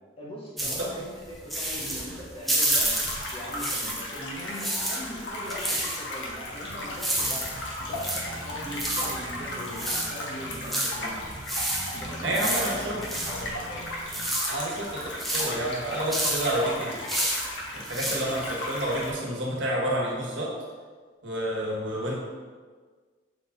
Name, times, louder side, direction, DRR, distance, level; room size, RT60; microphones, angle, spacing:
voice 1, 0.2-2.9 3.3-7.5 7.8-11.2 11.9-13.9, equal, 30° left, -5 dB, 1.4 m, -40 dB
sound 1, 0.6-4.2 4.4-19.1, right 1 dB, ahead, 0.7 m, -31 dB
sound 2, 2.6-19.1, left 1 dB, 65° left, 1.2 m, -36 dB
sound 3, 6.7-14.3, right 1 dB, 45° right, 0.5 m, -43 dB
voice 2, 12.2-13.0 14.5-17.1 17.7-20.5 21.2-22.2, right 1 dB, 70° right, -4 dB, 1.5 m, -29 dB
7.1 x 3.7 x 3.9 m, 1.5 s
head